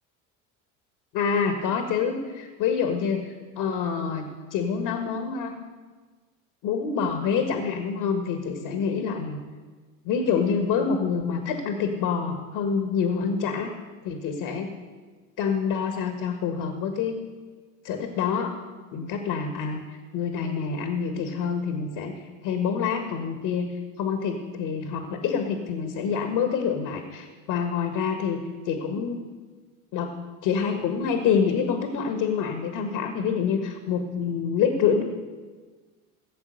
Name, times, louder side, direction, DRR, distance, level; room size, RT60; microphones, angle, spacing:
voice 1, 1.1-5.5 6.6-9.4 10.0-13.7 14.0-14.7 15.4-17.2 17.8-18.5 18.9-28.4 28.6-29.2 29.9-30.1 30.4-35.0, left 6 dB, 65° left, 5 dB, 1.7 m, -27 dB
17.0 x 7.5 x 6.5 m, 1.4 s
hypercardioid pair, 80°, 42 cm